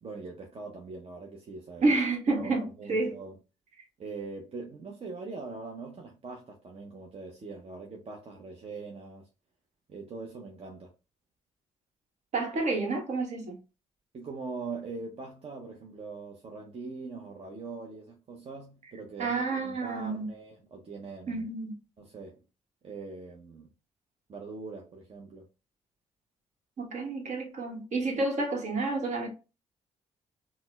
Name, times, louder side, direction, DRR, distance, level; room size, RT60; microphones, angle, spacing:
voice 1, 0.0-2.0 2.4-2.5 2.8-3.3 4.0-9.3 9.9-10.9 14.1-21.5 22.0-22.4 22.8-23.7 24.3-25.5, right 4 dB, 45° right, 0.7 m, -42 dB
voice 2, 1.8-3.2 12.3-13.6 19.2-20.3 21.3-21.8 26.8-29.3, right 3 dB, 60° right, 1.2 m, -29 dB
4.1 x 2.1 x 2.2 m
supercardioid pair, 55°, 14 cm